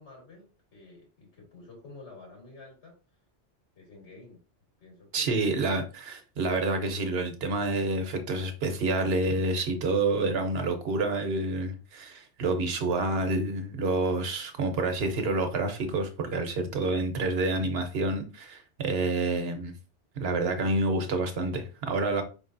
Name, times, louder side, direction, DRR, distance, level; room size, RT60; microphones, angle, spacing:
voice 1, 0.0-2.9 3.8-4.4 4.8-5.4, left 3 dB, 65° left, 1.8 m, -50 dB
voice 2, 5.1-19.7 20.2-22.2, right 2 dB, 60° right, 1.1 m, -28 dB
5.1 x 3.3 x 2.6 m
omnidirectional pair, 1.2 m